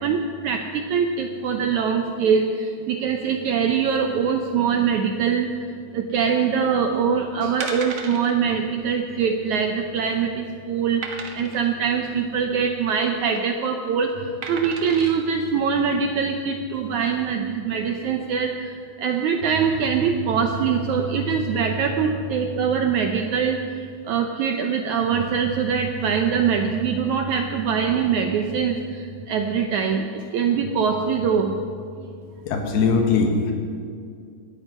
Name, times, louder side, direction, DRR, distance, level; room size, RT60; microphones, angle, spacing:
voice 1, 0.0-5.5 5.9-14.1 14.5-18.7 19.0-23.6 24.1-31.5, right 6 dB, 80° right, 4 dB, 1.7 m, -23 dB
sound 1, 6.9-7.1 7.6-8.3 8.7-8.8 9.1-9.2 9.8-10.2 11.0-11.7 13.0-13.4 14.4-15.2 15.8-15.9, right 5 dB, 55° right, 1.8 m, -35 dB
voice 2, 32.5-33.5, left 4 dB, 85° left, 3 dB, 3.4 m, -20 dB
19.0 x 12.5 x 5.5 m, 2.3 s
omnidirectional pair, 4.4 m